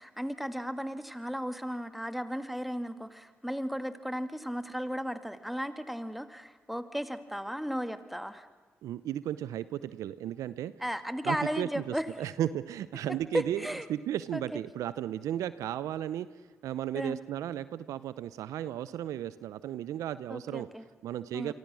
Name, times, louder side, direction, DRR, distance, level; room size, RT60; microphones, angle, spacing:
voice 1, 0.0-8.5 10.8-12.1 13.3-13.9 14.3-14.6 16.9-17.2 20.3-20.9 21.3-21.5, equal, ahead, 10 dB, 2.1 m, -35 dB
voice 2, 8.8-10.7 11.2-16.3 16.6-20.7 21.0-21.5, right 11 dB, 75° right, 16 dB, 0.7 m, -34 dB
28.0 x 23.5 x 6.3 m, 1.4 s
hypercardioid pair, 40°, 6 cm